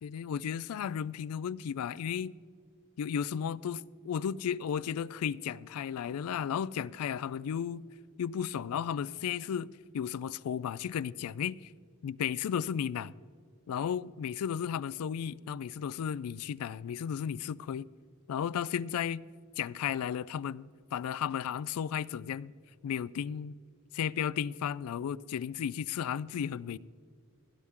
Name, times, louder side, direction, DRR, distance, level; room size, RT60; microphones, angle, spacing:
voice 1, 0.0-2.3 3.0-7.8 8.2-9.7 9.9-11.7 12.0-13.1 13.7-17.9 18.3-19.2 19.6-22.5 22.8-23.5 24.0-26.8, left 8 dB, 90° left, 0.3 m, -34 dB
16.5 x 11.0 x 3.7 m
head